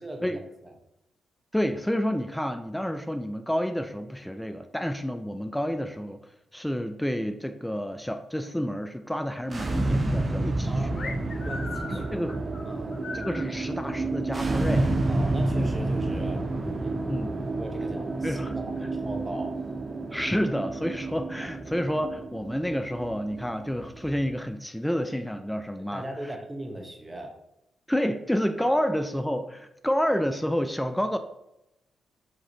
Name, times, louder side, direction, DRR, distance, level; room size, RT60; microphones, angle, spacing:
voice 1, 0.0-0.7 10.7-12.1 12.6-13.1 15.1-16.9 17.6-19.6 21.4-21.5 25.8-27.4 28.7-28.8, right 1 dB, 20° right, 2 dB, 1.0 m, -39 dB
voice 2, 1.5-11.2 11.9-12.4 13.1-14.9 17.1-17.4 18.2-18.5 20.1-26.0 27.9-31.2, equal, 5° left, 8 dB, 0.3 m, -29 dB
sound 1, 9.4-24.4, right 2 dB, 35° right, 0.6 m, -30 dB
sound 2, 11.0-13.5, left 3 dB, 55° left, 0.8 m, -38 dB
5.1 x 2.9 x 2.9 m, 0.85 s
supercardioid pair, 60°, 0 cm